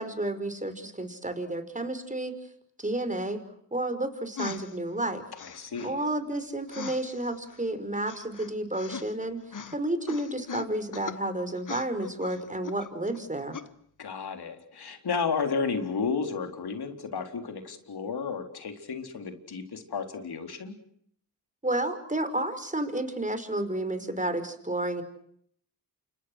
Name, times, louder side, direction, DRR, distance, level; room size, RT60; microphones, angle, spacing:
voice 1, 0.0-2.4 2.8-3.4 3.7-5.2 5.8-13.6 21.6-25.0, right 1 dB, 20° right, 10 dB, 5.3 m, -31 dB
sound 1, 4.4-4.8 5.4-5.9 6.7-7.6 8.1-9.3 9.5-9.8 10.1-11.2 11.6-13.2 13.5-13.7, left 6 dB, 50° left, 1.5 m, -40 dB
voice 2, 5.4-6.0 14.0-20.8, left 5 dB, 65° left, 5 dB, 4.2 m, -32 dB
29.5 x 26.0 x 6.4 m, 0.67 s
cardioid pair, 50°, 41 cm